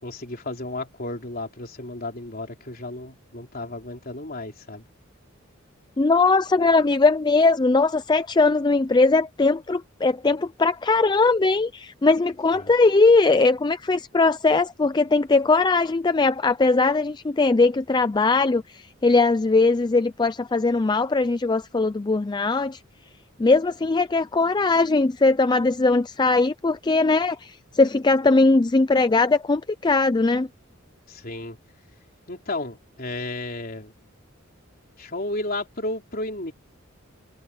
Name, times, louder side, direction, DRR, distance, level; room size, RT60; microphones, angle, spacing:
voice 1, 0.0-4.8 12.5-12.7 31.1-31.6 32.3-33.9 35.0-36.5, left 2 dB, 45° left, 3.6 m, -33 dB
voice 2, 6.0-22.8 23.4-30.5, left 3 dB, 20° left, 0.4 m, -20 dB
head